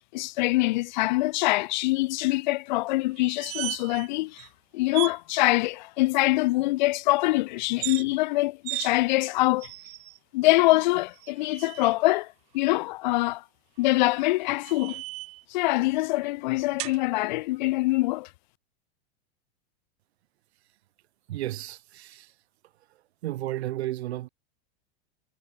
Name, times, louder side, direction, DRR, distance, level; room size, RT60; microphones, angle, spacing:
voice 1, 0.1-4.5 4.7-9.7 10.3-13.4 13.8-15.0 15.5-18.3, left 20 dB, 45° left, 0.9 m, -24 dB
sound 1, 3.2-4.1 4.4-4.5 4.9-5.2 7.7-8.0 8.6-8.9 9.6-10.2 11.1-11.9 13.8-15.4 16.8-17.0, right 23 dB, 20° right, 0.5 m, -36 dB
voice 2, 21.3-22.3 23.2-24.3, right 15 dB, 75° right, 1.3 m, -33 dB
supercardioid pair, 175°, 33 cm